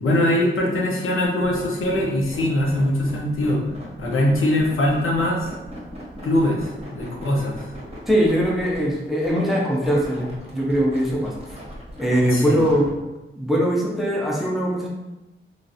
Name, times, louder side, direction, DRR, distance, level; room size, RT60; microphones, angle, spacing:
voice 1, 0.0-3.6 4.0-5.5 6.2-7.6 12.3-12.6, left 1 dB, 80° left, -2 dB, 0.7 m, -22 dB
sound 1, 1.3-12.9, equal, 30° right, 0.8 m, -38 dB
voice 2, 8.1-11.3 12.0-12.9 13.4-14.9, equal, ahead, -3 dB, 0.6 m, -21 dB
3.1 x 2.5 x 2.6 m, 1.0 s
wide cardioid pair, 115°, 21 cm